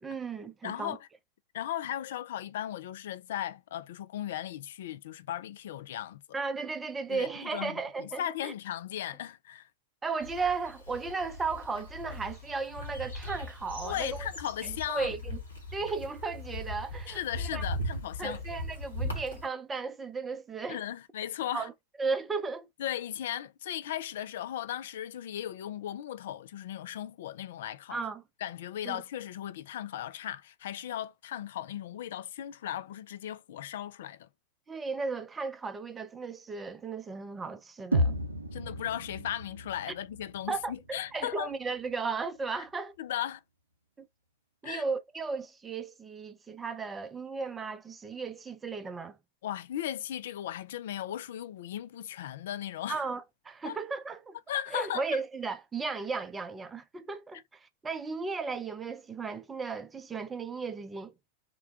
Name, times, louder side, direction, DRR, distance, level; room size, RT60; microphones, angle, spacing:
voice 1, 0.0-1.0 6.3-8.5 10.0-14.3 14.6-15.4 15.7-17.6 18.2-20.8 21.5-21.7 22.0-22.7 27.9-28.2 28.8-29.0 34.7-38.2 40.5-43.0 44.0-44.1 44.6-49.2 52.9-54.4 54.7-61.1, right 4 dB, 15° right, 0.5 m, -35 dB
voice 2, 0.6-1.0 1.5-6.2 7.1-9.7 13.8-15.1 17.1-18.4 20.7-21.7 22.8-28.0 28.4-34.3 38.5-41.5 43.0-43.4 44.6-44.8 49.4-53.0 53.6-53.8 54.5-55.2, left 11 dB, 55° left, 0.3 m, -37 dB
sound 1, 10.2-19.5, left 1 dB, 75° left, 1.3 m, -39 dB
sound 2, 37.9-41.9, equal, 80° right, 0.6 m, -33 dB
3.7 x 2.2 x 3.2 m
figure-of-eight pair, 90°, 0 cm